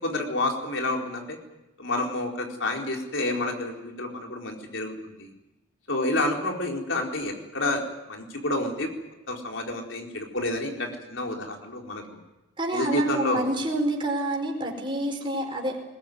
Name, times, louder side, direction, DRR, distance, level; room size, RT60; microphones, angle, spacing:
voice 1, 0.0-1.4 1.8-5.3 5.9-8.9 9.3-12.0 12.7-13.4, left 2 dB, 70° left, 1 dB, 4.4 m, -29 dB
voice 2, 12.6-15.9, right 1 dB, 25° right, 1 dB, 4.8 m, -28 dB
21.0 x 21.0 x 9.4 m, 0.98 s
head